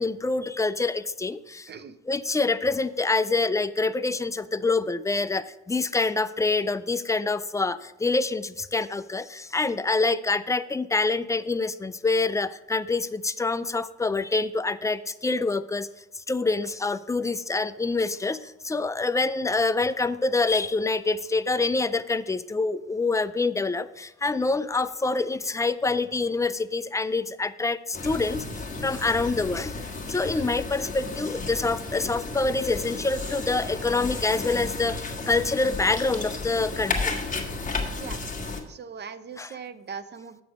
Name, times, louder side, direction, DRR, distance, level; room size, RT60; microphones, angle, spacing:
voice 1, 0.0-1.7 2.1-15.9 16.1-28.4 28.8-37.1 39.4-39.5, left 3 dB, 10° left, 13 dB, 0.4 m, -26 dB
sound 1, 27.9-38.6, left 3 dB, 25° left, 1.5 m, -33 dB
voice 2, 38.7-40.4, right 6 dB, 35° right, 13 dB, 0.6 m, -39 dB
8.1 x 6.2 x 5.1 m, 0.91 s
cardioid pair, 90°, 30 cm